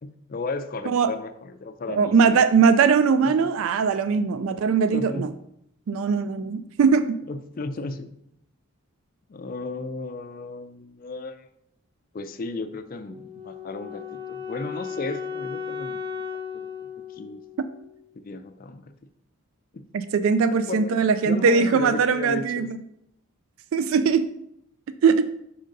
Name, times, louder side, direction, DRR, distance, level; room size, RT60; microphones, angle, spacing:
voice 1, 0.0-2.4 3.2-3.5 4.9-5.3 7.3-8.1 9.3-11.5 12.1-16.2 17.1-17.4 18.2-18.8 19.7-19.9 20.6-22.7, left 3 dB, 40° left, 9 dB, 0.4 m, -34 dB
voice 2, 1.9-5.3 5.9-7.2 19.9-22.8 23.7-24.2 25.0-25.3, right 5 dB, 65° right, 12 dB, 0.3 m, -20 dB
Wind instrument woodwind instrument, 13.1-18.1, left 6 dB, 25° right, 0.7 m, -36 dB
5.5 x 3.8 x 5.2 m, 0.76 s
head